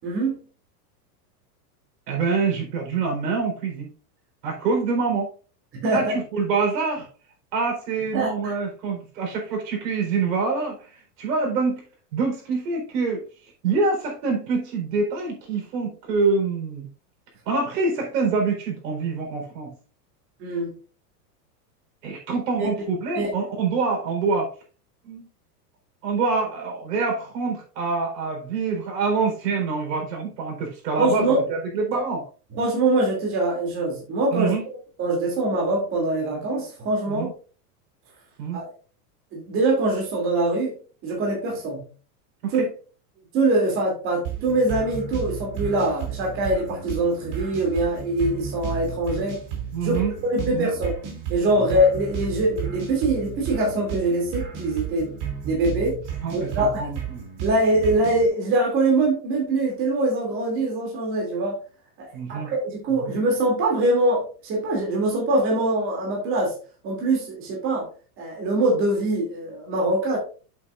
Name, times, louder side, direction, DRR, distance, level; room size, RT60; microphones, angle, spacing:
voice 1, 0.0-0.4 5.7-6.2 8.1-8.5 20.4-20.7 22.6-22.7 23.1-23.3 31.0-31.4 32.5-34.5 35.0-37.3 38.5-38.7 39.3-40.7 41.0-41.8 42.5-42.7 43.3-49.4 49.8-50.0 50.3-50.9 51.3-55.1 55.4-56.0 56.3-56.8 57.4-61.6 62.0-66.5 66.8-67.9 68.2-70.2, right 2 dB, 25° right, -2 dB, 2.7 m, -23 dB
voice 2, 2.1-3.9 4.4-5.3 5.9-7.1 7.5-11.8 12.1-13.3 13.6-16.9 17.5-19.7 22.0-24.5 25.0-25.3 26.0-32.2 34.3-34.6 37.1-37.3 38.4-38.6 42.4-42.6 49.7-50.7 51.5-51.7 56.2-57.2 62.1-62.5 63.0-63.1, right 4 dB, 85° right, 2 dB, 4.3 m, -26 dB
sound 1, 44.2-58.3, right 8 dB, 45° right, 3.0 m, -33 dB
8.1 x 8.0 x 2.5 m, 0.37 s
supercardioid pair, 175°, 47 cm